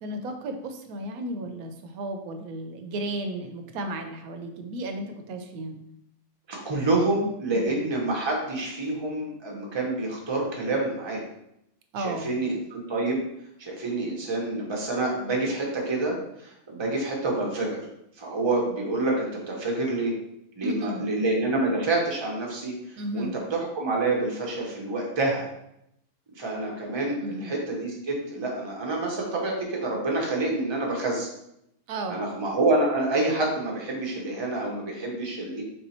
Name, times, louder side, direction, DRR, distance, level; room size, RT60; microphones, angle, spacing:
voice 1, 0.0-5.7 7.5-7.8 11.9-12.3 20.6-21.1 23.0-23.4 27.2-27.5 31.9-32.2, right 1 dB, 85° right, 6 dB, 1.0 m, -34 dB
voice 2, 6.5-11.2 12.0-13.2 13.6-17.8 18.2-20.1 20.6-25.5 26.4-31.3 32.1-35.6, right 2 dB, 25° right, -1 dB, 0.7 m, -27 dB
3.9 x 2.7 x 4.2 m, 0.79 s
omnidirectional pair, 1.5 m